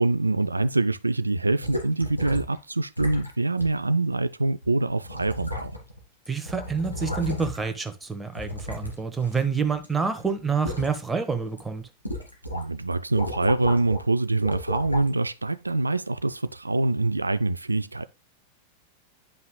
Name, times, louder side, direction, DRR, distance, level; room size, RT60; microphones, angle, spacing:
voice 1, 0.0-5.8 12.5-18.1, right 2 dB, 80° right, 0.3 m, -25 dB
sound 1, 1.6-2.6 3.0-3.3 3.6-3.7 4.6-4.7 5.0-6.0 6.3-7.7 8.3-9.9 10.2-11.0 11.4-11.6 12.1-12.6 12.9-14.0 14.4-15.1 15.8-15.9, left 1 dB, 90° left, 2.2 m, -34 dB
voice 2, 6.3-11.9, right 5 dB, 10° right, 1.1 m, -28 dB
9.7 x 5.5 x 2.2 m
figure-of-eight pair, 90°, 0 cm